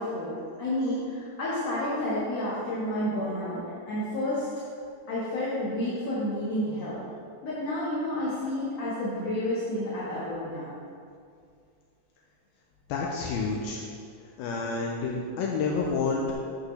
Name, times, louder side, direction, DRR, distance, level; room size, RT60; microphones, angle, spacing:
voice 1, 0.0-3.6 3.9-4.5 5.1-7.0 7.4-10.7, left 1 dB, 55° left, -10 dB, 2.0 m, -30 dB
voice 2, 12.9-13.8 14.4-16.3, left 4 dB, 85° left, -1 dB, 2.1 m, -29 dB
10.5 x 8.1 x 3.3 m, 2.3 s
omnidirectional pair, 4.9 m